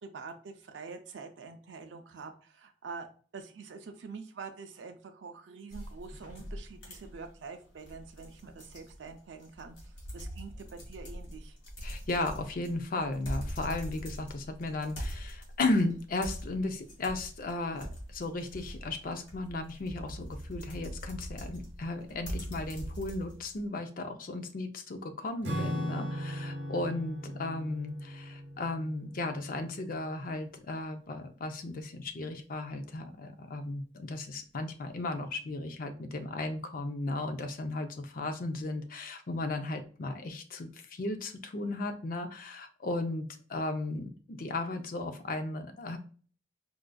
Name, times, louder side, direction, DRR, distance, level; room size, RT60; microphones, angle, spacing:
voice 1, 0.0-3.1 3.3-11.6, right 4 dB, 85° right, 5 dB, 0.5 m, -46 dB
sound 1, 5.7-23.6, equal, 85° left, 1.4 m, -42 dB
voice 2, 11.8-46.0, left 2 dB, 50° left, 6 dB, 0.5 m, -35 dB
Acoustic guitar / Strum, 25.4-30.2, equal, 65° right, 0.8 m, -38 dB
4.5 x 2.5 x 2.2 m, 0.41 s
head